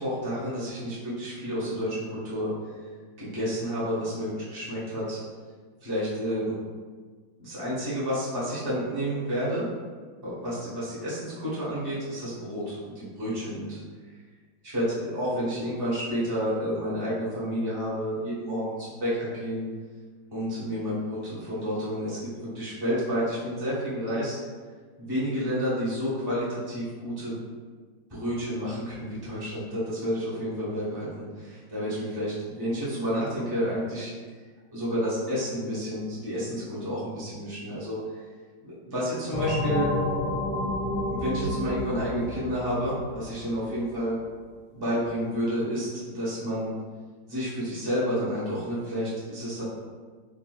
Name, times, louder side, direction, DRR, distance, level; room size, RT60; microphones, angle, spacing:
voice 1, 0.0-2.5 3.2-5.2 5.8-6.5 7.4-9.7 10.2-13.8 14.6-19.7 20.3-22.2 22.5-24.4 25.0-27.4 28.1-34.1 34.7-38.0 38.6-39.9 41.1-44.2 44.7-46.7 47.3-49.6, equal, 20° right, -10 dB, 0.6 m, -30 dB
sound 1, 39.3-43.7, left 1 dB, 70° left, 1.0 m, -30 dB
3.8 x 2.6 x 2.3 m, 1.5 s
omnidirectional pair, 2.2 m